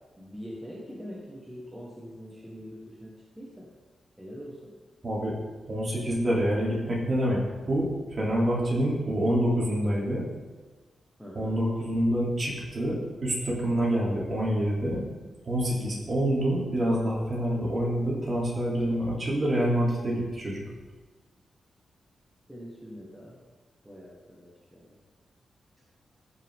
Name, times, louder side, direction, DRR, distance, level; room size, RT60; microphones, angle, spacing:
voice 1, 0.2-3.7 4.2-4.7 11.2-11.6 22.5-23.4 23.8-24.9, equal, 5° right, -6 dB, 1.6 m, -43 dB
voice 2, 5.0-5.3 5.6-7.4 7.7-10.2 11.3-15.0 15.4-20.6, equal, 35° right, -5 dB, 3.3 m, -27 dB
14.5 x 5.7 x 3.8 m, 1.3 s
wide cardioid pair, 130°, 0 cm